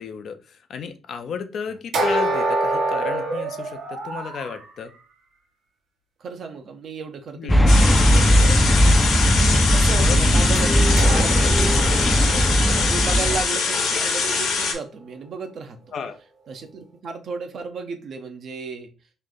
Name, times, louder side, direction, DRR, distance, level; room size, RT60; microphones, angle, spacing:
voice 1, 0.0-4.9 7.3-7.6 9.9-10.2 15.9-16.2, left 6 dB, 65° left, 8 dB, 0.5 m, -33 dB
sound 1, 1.9-4.6 10.6-14.6, right 2 dB, 80° right, 1.2 m, -27 dB
voice 2, 6.2-15.8 16.5-18.9, right 4 dB, 60° right, 6 dB, 0.7 m, -34 dB
sound 2, 7.5-13.4, equal, 15° left, 0.4 m, -18 dB
sound 3, 7.7-14.7, left 5 dB, 80° left, 1.1 m, -23 dB
3.2 x 2.6 x 3.8 m, 0.34 s
cardioid pair, 90°, 0 cm